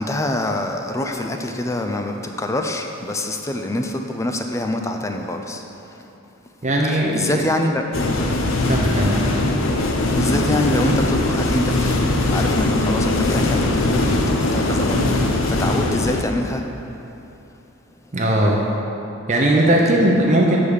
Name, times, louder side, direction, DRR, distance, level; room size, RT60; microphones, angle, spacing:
voice 1, 0.0-5.6 6.9-7.8 10.0-16.6, left 1 dB, 15° left, 4 dB, 0.4 m, -25 dB
voice 2, 6.6-7.4 8.7-9.1 18.1-18.6 19.3-20.6, right 1 dB, 35° right, -2 dB, 0.7 m, -18 dB
sound 1, 7.9-16.2, left 2 dB, 75° left, 0.6 m, -20 dB
7.2 x 5.1 x 6.4 m, 2.9 s
head